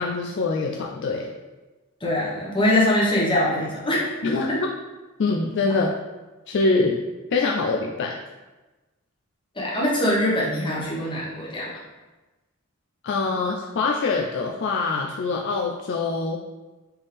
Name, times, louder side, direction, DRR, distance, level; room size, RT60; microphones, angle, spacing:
voice 1, 0.0-1.3 4.2-4.7 5.2-5.9 6.5-7.0 7.3-8.2 13.0-16.4, left 3 dB, 55° left, 0 dB, 0.4 m, -24 dB
voice 2, 2.0-4.0 4.5-4.6 9.6-11.7, left 1 dB, 25° left, -5 dB, 1.2 m, -22 dB
4.3 x 3.6 x 3.4 m, 1.2 s
head